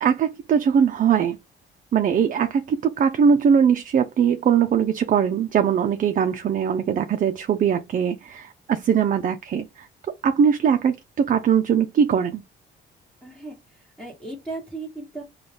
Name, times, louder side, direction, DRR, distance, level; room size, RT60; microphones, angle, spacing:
voice 1, 0.0-1.4 1.9-9.7 10.2-12.4, right 7 dB, 45° right, 0.5 m, -21 dB
voice 2, 13.2-15.2, right 3 dB, 5° left, 1.1 m, -36 dB
3.8 x 2.3 x 3.3 m
cardioid pair, 90°, 20 cm